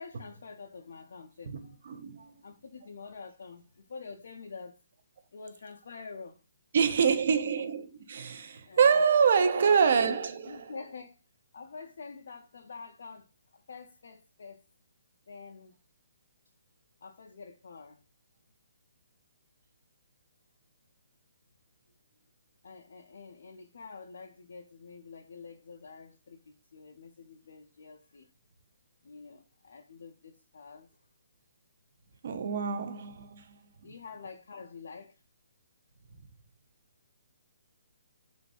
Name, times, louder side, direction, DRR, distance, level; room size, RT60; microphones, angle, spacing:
voice 1, 0.0-1.8 2.4-4.8 5.3-6.4 8.7-9.0 10.5-11.2 11.5-14.6 15.3-15.7 17.0-18.0 22.6-28.3 29.0-30.9 33.8-35.2, left 4 dB, 65° left, 0.3 m, -47 dB
voice 2, 1.9-2.3 6.7-10.7 32.2-33.6, right 6 dB, 55° right, 0.4 m, -26 dB
2.6 x 2.3 x 2.3 m
figure-of-eight pair, 140°, 0 cm